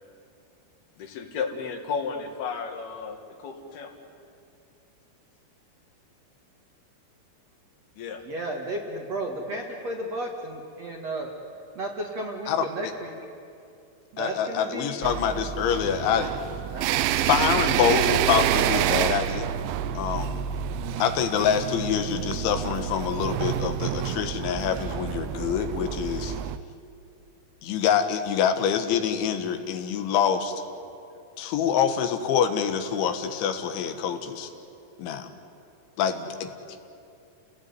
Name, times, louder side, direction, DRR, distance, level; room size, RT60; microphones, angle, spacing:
voice 1, 1.2-3.9 8.0-8.2, left 5 dB, 65° left, 4 dB, 3.6 m, -33 dB
voice 2, 8.2-11.3 11.8-13.1 14.1-15.0 16.7-16.9, right 1 dB, 50° right, 1 dB, 2.2 m, -33 dB
voice 3, 14.2-16.3 17.2-19.5 20.0-20.4 21.0-26.4 27.6-30.6 31.4-34.5 35.0-35.3 36.0-36.5, left 8 dB, 90° left, 7 dB, 3.8 m, -25 dB
sound 1, 15.0-26.6, right 11 dB, 85° right, 3.1 m, -28 dB
29.5 x 18.0 x 9.7 m, 2.6 s
omnidirectional pair, 5.2 m